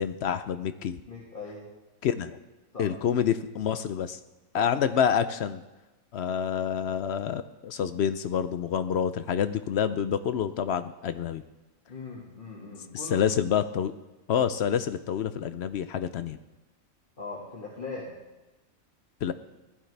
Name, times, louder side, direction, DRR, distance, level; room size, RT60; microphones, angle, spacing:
voice 1, 0.0-1.0 2.0-2.4 2.8-4.2 4.5-5.6 6.1-11.4 12.9-13.9 14.3-16.4 19.2-19.3, left 8 dB, 65° left, 12 dB, 0.7 m, -27 dB
voice 2, 1.1-1.7 2.7-2.9 4.5-4.7 11.9-13.3 17.2-18.2, left 3 dB, 40° left, -5 dB, 2.0 m, -40 dB
16.0 x 12.0 x 3.3 m, 1.1 s
omnidirectional pair, 1.5 m